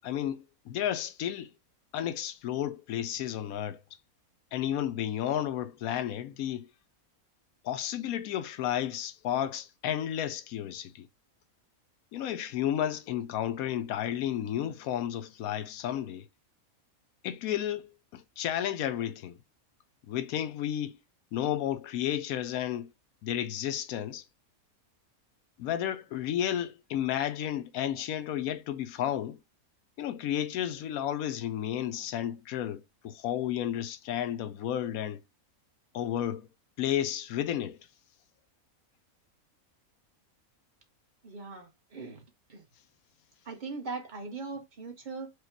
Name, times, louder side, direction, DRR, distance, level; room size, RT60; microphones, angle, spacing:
voice 1, 0.0-1.5 1.9-3.8 4.5-6.7 7.6-11.1 12.1-16.3 17.2-19.4 20.1-21.0 21.3-22.9 23.2-24.2 25.6-29.4 30.0-35.2 35.9-36.5 36.8-37.8, left 11 dB, 80° left, 1.1 m, -32 dB
voice 2, 41.2-42.2 42.5-42.6 43.4-45.3, right 4 dB, 35° right, 1.3 m, -40 dB
4.9 x 2.3 x 4.5 m
omnidirectional pair, 1.5 m